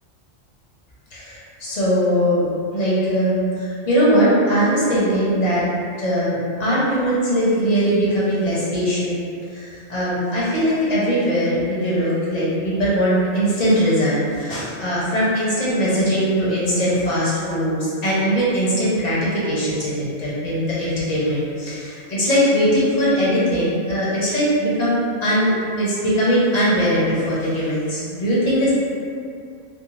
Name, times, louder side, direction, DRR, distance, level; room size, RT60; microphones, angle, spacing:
voice 1, 1.1-5.6 6.0-9.2 9.5-25.0 25.2-28.7, equal, 45° left, -8 dB, 0.7 m, -20 dB
2.6 x 2.1 x 3.0 m, 2.4 s
omnidirectional pair, 1.2 m